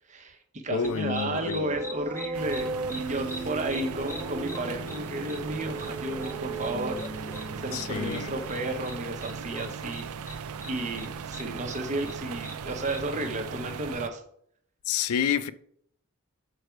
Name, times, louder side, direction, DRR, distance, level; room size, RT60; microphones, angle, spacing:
voice 1, 0.1-14.2, right 2 dB, 35° right, 0.9 m, -33 dB
voice 2, 0.7-1.7 7.7-8.3 14.9-15.5, left 7 dB, 85° left, 0.4 m, -28 dB
sound 1, 0.8-13.1, left 1 dB, 10° left, 0.5 m, -45 dB
sound 2, 1.0-8.7, right 2 dB, 15° right, 1.0 m, -37 dB
sound 3, 2.3-14.1, right 6 dB, 85° right, 0.4 m, -38 dB
6.5 x 4.7 x 4.5 m
head